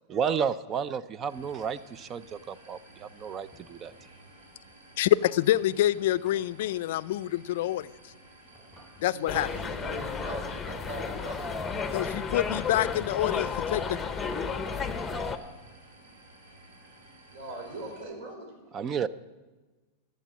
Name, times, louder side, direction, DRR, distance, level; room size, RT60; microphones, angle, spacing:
voice 1, 0.1-3.9 8.8-8.9 18.7-19.1, right 7 dB, 30° right, 17 dB, 0.5 m, -32 dB
sound 1, 1.3-18.0, right 1 dB, 75° right, 3.2 m, -54 dB
sound 2, 1.4-2.1 3.5-4.2 6.2-6.9 8.5-9.3 11.3-11.7, equal, 5° right, 3.6 m, -57 dB
voice 2, 5.0-7.9 9.0-9.5 11.9-14.0, left 13 dB, 70° left, 17 dB, 0.4 m, -26 dB
voice 3, 9.0-11.5 17.3-18.5, right 2 dB, 55° right, 3 dB, 4.0 m, -40 dB
sound 3, 9.3-15.4, left 5 dB, 15° left, 0.9 m, -32 dB
12.5 x 7.6 x 7.4 m, 1.3 s
hypercardioid pair, 120°, 0 cm